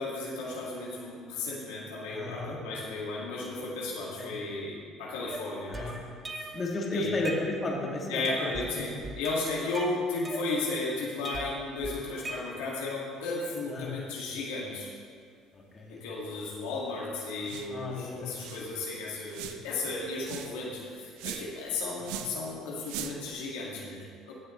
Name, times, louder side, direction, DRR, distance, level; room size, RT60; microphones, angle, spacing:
voice 1, 0.0-5.9 6.4-6.5 6.9-7.2 8.1-14.9 15.9-24.3, left 3 dB, 90° left, -4 dB, 1.9 m, -34 dB
voice 2, 2.1-2.6 4.2-4.3 5.7-5.9 6.5-8.9 13.7-13.9 15.5-16.0 17.7-18.7 22.1-22.2, left 2 dB, 35° left, -2 dB, 2.1 m, -34 dB
sound 1, 5.3-6.7 7.0-7.9 8.2-8.7 9.0-10.8 11.2-12.9, right 2 dB, 30° right, 1.1 m, -40 dB
sound 2, 17.4-17.8 18.1-18.2 18.4-18.7 19.3-19.7 20.2-20.6 21.2-21.6 22.0-22.4 22.8-23.3, right 10 dB, 80° right, 0.5 m, -40 dB
16.5 x 6.6 x 3.1 m, 2.1 s
supercardioid pair, 75°, 0 cm